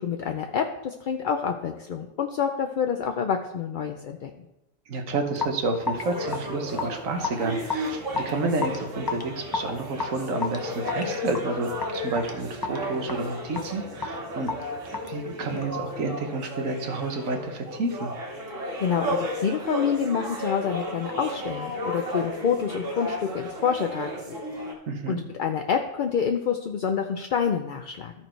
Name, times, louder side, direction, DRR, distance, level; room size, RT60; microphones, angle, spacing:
voice 1, 0.0-4.3 18.8-24.4 25.1-28.1, left 7 dB, 55° left, 5 dB, 0.5 m, -27 dB
voice 2, 4.9-14.5 15.0-18.1 24.9-25.2, right 3 dB, 90° right, 5 dB, 1.5 m, -30 dB
Raindrop / Drip, 5.3-15.9, left 5 dB, 20° left, 0.7 m, -34 dB
sound 1, 5.8-24.7, equal, 75° right, 2.0 m, -34 dB
13.5 x 4.5 x 4.5 m, 0.89 s
omnidirectional pair, 1.3 m